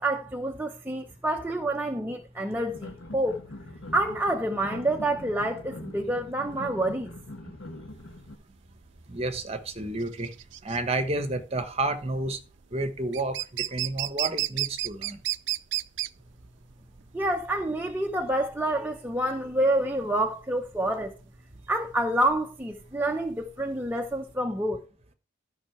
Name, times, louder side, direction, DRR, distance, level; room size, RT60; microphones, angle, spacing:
voice 1, 0.0-3.4 3.9-7.1 17.1-21.1 21.7-24.8, right 1 dB, 10° right, 0.7 m, -28 dB
sound 1, 2.7-8.3, left 1 dB, 75° left, 1.5 m, -43 dB
sound 2, 8.0-24.3, right 14 dB, 65° right, 0.4 m, -34 dB
voice 2, 9.1-10.3 10.6-12.4 12.7-13.4 13.7-15.2, right 2 dB, 30° right, 1.2 m, -30 dB
12.5 x 5.6 x 4.6 m
head